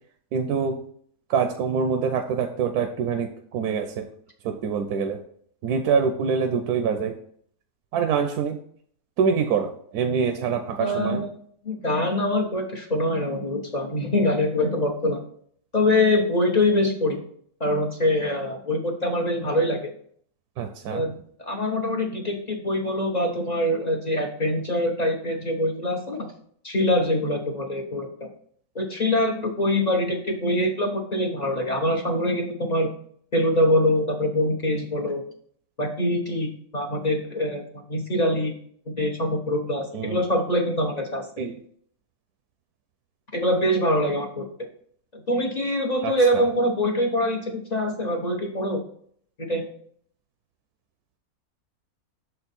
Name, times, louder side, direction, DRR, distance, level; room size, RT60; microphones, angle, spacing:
voice 1, 0.3-0.8 1.3-4.1 4.4-5.2 5.6-7.1 7.9-8.6 9.2-11.2 20.6-21.0 39.9-40.2 41.4-41.5 46.0-46.5, right 6 dB, 85° right, 6 dB, 1.1 m, -25 dB
voice 2, 10.8-11.3 11.6-15.2 15.7-17.2 17.6-19.8 20.9-26.3 26.6-28.3 28.7-32.9 33.3-35.2 35.8-37.6 37.9-38.5 38.9-41.3 43.3-44.5 45.1-48.8 49.5-49.7, left 1 dB, 40° left, 1 dB, 0.7 m, -24 dB
6.7 x 4.4 x 4.1 m, 0.62 s
omnidirectional pair, 1.6 m